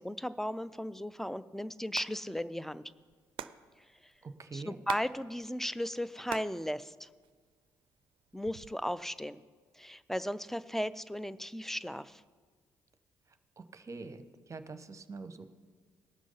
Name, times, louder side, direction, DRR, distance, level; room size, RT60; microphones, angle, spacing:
voice 1, 0.0-2.8 3.8-4.1 4.5-7.1 8.3-9.4 9.7-12.2, equal, 5° left, 15 dB, 0.4 m, -36 dB
Hands, 1.7-2.1 2.4-2.5 2.7-5.1 5.4-6.6 6.9-7.7 8.3-8.9, right 11 dB, 55° right, 0.4 m, -43 dB
voice 2, 4.2-4.8 13.3-15.5, right 3 dB, 30° right, 10 dB, 0.9 m, -45 dB
17.5 x 6.2 x 5.5 m, 1.5 s
figure-of-eight pair, 45°, 10 cm